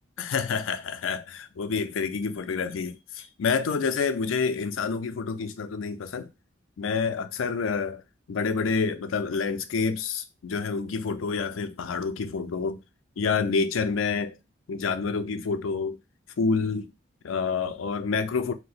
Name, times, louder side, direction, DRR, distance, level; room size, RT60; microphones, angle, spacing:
voice 1, 0.2-6.3 6.8-8.0 8.3-12.8 13.2-14.4 14.7-16.0 16.4-16.9 17.2-18.5, left 5 dB, 85° left, 0.4 m, -28 dB
2.7 x 2.1 x 4.0 m
head